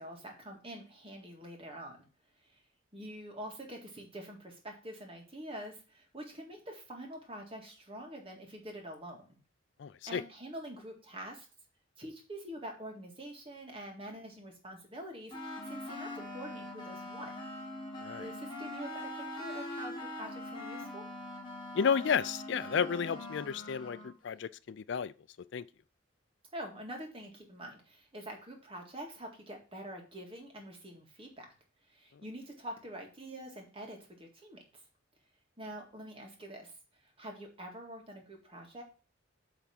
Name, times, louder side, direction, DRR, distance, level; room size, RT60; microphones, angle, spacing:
voice 1, 0.0-2.1 2.9-9.4 10.1-11.5 12.0-15.3 15.7-17.3 18.2-21.1 26.5-31.5 31.9-34.6 35.6-36.7 37.0-38.8, right 1 dB, 30° right, 1.9 m, -45 dB
voice 2, 9.8-10.2 18.0-18.2 21.7-25.1 25.5-25.6, left 6 dB, 60° left, 0.4 m, -32 dB
sound 1, 15.3-24.1, left 1 dB, 25° left, 1.7 m, -42 dB
8.1 x 3.6 x 5.8 m
head